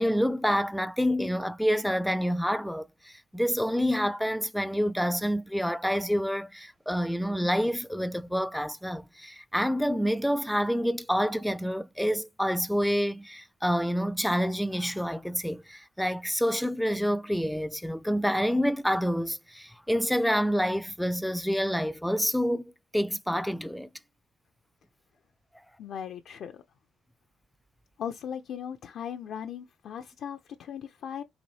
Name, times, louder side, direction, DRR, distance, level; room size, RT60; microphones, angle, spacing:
voice 1, 0.0-23.9, equal, ahead, 0.3 m, -28 dB
voice 2, 25.8-26.6 28.0-31.2, left 8 dB, 70° left, 0.4 m, -38 dB
4.0 x 2.6 x 3.1 m
cardioid pair, 90°, 0 cm